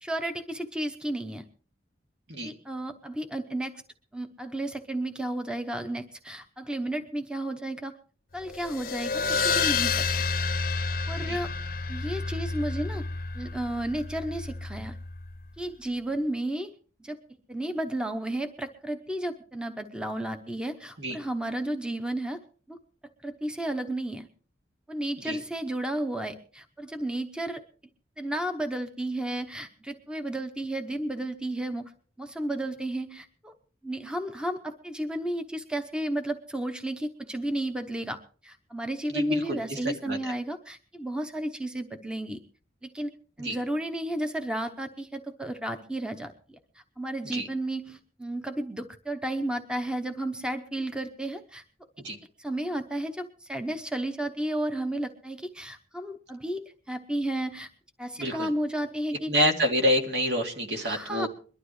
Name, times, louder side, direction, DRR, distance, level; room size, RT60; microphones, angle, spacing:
voice 1, 0.0-1.4 2.4-3.8 4.1-7.9 8.3-10.1 11.1-11.5 11.9-13.0 13.3-15.0 15.6-16.7 17.0-17.2 17.5-22.4 22.7-22.8 23.2-24.3 24.9-27.6 28.2-31.9 32.2-33.5 33.8-38.2 38.4-42.4 42.8-43.1 43.4-46.6 47.0-51.6 52.4-57.7 58.0-59.3 60.8-61.3, right 1 dB, 5° right, 7 dB, 0.8 m, -32 dB
sound 1, 8.5-15.5, left 4 dB, 50° left, 0.7 m, -30 dB
voice 2, 39.1-39.8 40.1-40.3 43.4-43.6 47.3-47.5 52.0-52.2 58.2-58.5 59.3-61.3, equal, 70° right, 3 dB, 2.5 m, -27 dB
22.5 x 12.0 x 3.2 m, 0.41 s
head